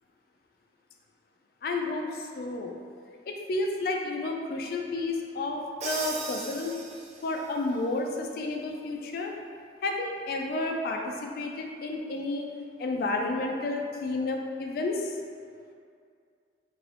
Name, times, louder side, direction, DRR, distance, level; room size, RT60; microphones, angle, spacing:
voice 1, 1.6-2.7 3.3-6.8 7.2-9.3 9.8-12.5 12.8-15.2, left 2 dB, 55° left, 2 dB, 0.3 m, -31 dB
Crash cymbal, 5.8-7.5, right 4 dB, 40° right, 0.4 m, -37 dB
3.0 x 2.6 x 3.2 m, 2.2 s
head